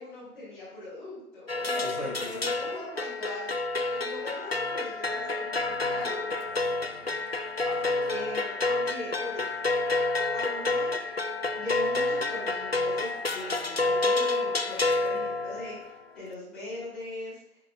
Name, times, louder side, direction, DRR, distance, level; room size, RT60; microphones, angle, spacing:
voice 1, 0.0-3.5 3.9-6.3 8.0-9.5 10.3-11.2 11.5-17.4, left 1 dB, ahead, -14 dB, 3.2 m, -40 dB
sound 1, 1.5-15.9, left 2 dB, 45° left, 0.4 m, -29 dB
voice 2, 1.8-2.7 6.5-7.1 7.7-8.1 15.5-15.6, left 1 dB, 80° right, -1 dB, 2.8 m, -42 dB
10.0 x 8.8 x 2.5 m, 0.76 s
figure-of-eight pair, 150°, 45 cm